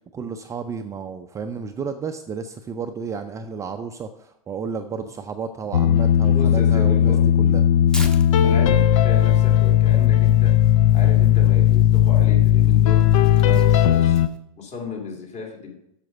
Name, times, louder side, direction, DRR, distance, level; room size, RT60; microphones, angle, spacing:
voice 1, 0.1-7.7 8.4-8.6 10.9-11.1 13.5-13.7, right 5 dB, 15° right, 6 dB, 0.4 m, -32 dB
sound 1, 5.7-14.3, left 11 dB, 60° left, 0.5 m, -16 dB
voice 2, 6.3-7.3 8.4-10.6 10.9-14.2 14.6-15.7, left 4 dB, 35° left, 1 dB, 2.4 m, -35 dB
Tearing, 7.9-14.4, equal, 5° left, 0.9 m, -41 dB
7.6 x 6.6 x 5.3 m, 0.81 s
hypercardioid pair, 105°, 19 cm